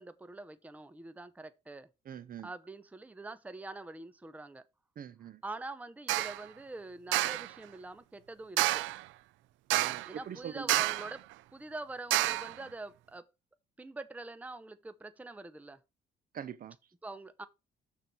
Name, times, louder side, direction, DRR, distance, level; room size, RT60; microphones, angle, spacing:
voice 1, 0.0-1.9 2.4-4.6 5.4-8.9 10.0-13.2 13.8-15.8 17.0-17.5, right 2 dB, 10° right, 0.7 m, -45 dB
voice 2, 2.1-2.5 5.0-5.4 9.7-10.8 16.3-16.8, right 8 dB, 50° right, 0.7 m, -43 dB
sound 1, 6.1-6.4 7.1-7.5 8.6-9.0 9.7-10.1 10.7-11.1 12.1-12.5, right 17 dB, 85° right, 0.4 m, -29 dB
6.5 x 4.3 x 6.1 m
cardioid pair, 100°, 19 cm